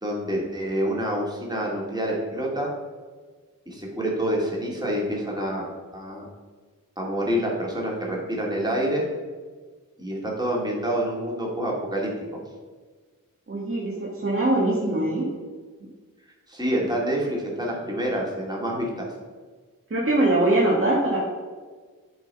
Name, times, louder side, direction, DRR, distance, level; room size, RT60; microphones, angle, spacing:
voice 1, 0.0-2.7 3.7-5.7 5.9-6.2 7.0-9.0 10.0-12.4 16.5-19.1, equal, 10° right, -3 dB, 2.2 m, -27 dB
voice 2, 13.5-15.3 19.9-21.2, right 2 dB, 40° right, -5 dB, 1.7 m, -22 dB
9.4 x 3.9 x 5.4 m, 1.4 s
cardioid pair, 55°, 34 cm